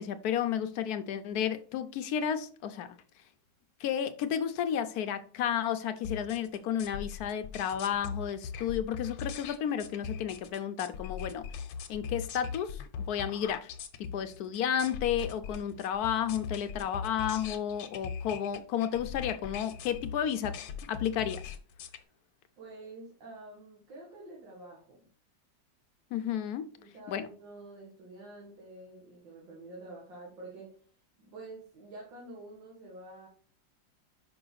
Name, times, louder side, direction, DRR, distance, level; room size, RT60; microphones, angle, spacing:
voice 1, 0.0-2.9 3.8-11.4 11.9-13.7 14.0-20.6 20.9-21.5 26.1-26.7 27.1-27.3, left 9 dB, 70° left, 1.0 m, -32 dB
sound 1, 6.0-22.0, left 6 dB, 85° left, 1.5 m, -40 dB
voice 2, 22.6-25.0 26.8-30.8 31.2-33.3, right 2 dB, 75° right, 2.3 m, -48 dB
5.8 x 5.5 x 3.9 m
omnidirectional pair, 2.0 m